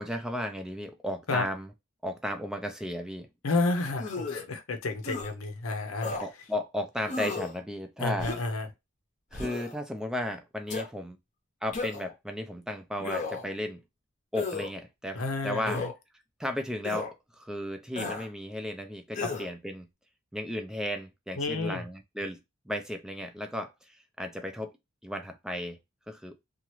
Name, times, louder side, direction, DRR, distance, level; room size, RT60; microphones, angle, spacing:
voice 1, 0.0-1.7 2.0-3.3 6.2-8.3 9.3-11.2 11.6-13.8 14.3-15.8 16.4-19.9 20.3-22.4 22.7-24.7 25.0-25.8 26.1-26.3, left 1 dB, 5° right, 0.4 m, -34 dB
voice 2, 3.4-6.2 8.0-8.7 15.1-15.9 19.2-19.3 21.4-21.8, left 3 dB, 75° left, 0.7 m, -30 dB
sound 1, 4.0-4.4 5.0-5.3 6.0-6.3 7.1-7.5 8.2-8.6 9.3-9.7 10.7-10.9 11.7-12.1 13.0-13.5 14.3-14.7 15.7-15.9 16.8-17.1 18.0-18.3 19.1-19.5, left 3 dB, 35° left, 0.7 m, -34 dB
2.9 x 2.4 x 3.0 m
head